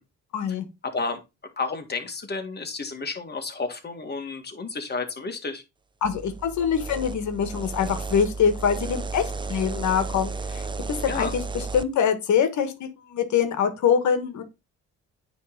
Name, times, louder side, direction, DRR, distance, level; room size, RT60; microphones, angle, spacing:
voice 1, 0.3-0.7 6.0-11.4 11.7-14.4, left 7 dB, 70° left, 1.4 m, -24 dB
voice 2, 0.8-1.2 1.6-5.6 11.1-11.3, left 4 dB, 35° left, 1.8 m, -31 dB
sound 1, 6.0-11.8, right 3 dB, 15° right, 0.4 m, -33 dB
9.2 x 3.3 x 3.8 m
cardioid pair, 90°, 30 cm